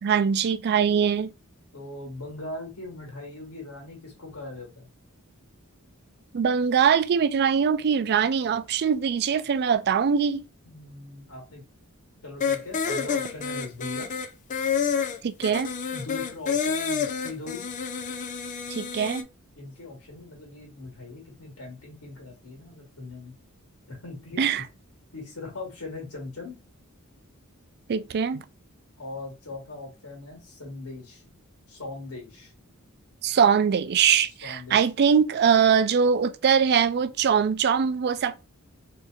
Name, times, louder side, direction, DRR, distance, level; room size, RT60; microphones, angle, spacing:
voice 1, 0.0-1.3 6.3-10.4 15.2-15.7 18.7-19.3 24.4-24.6 27.9-28.4 33.2-38.4, right 7 dB, 50° right, 0.4 m, -22 dB
voice 2, 1.7-4.9 10.6-11.6 12.2-14.1 15.9-17.7 19.6-23.3 23.9-24.6 25.1-26.6 29.0-31.2 31.7-32.5 34.4-34.8, left 2 dB, 75° left, 1.4 m, -40 dB
sound 1, 12.4-19.2, left 6 dB, 35° left, 0.4 m, -29 dB
4.1 x 2.8 x 2.3 m
head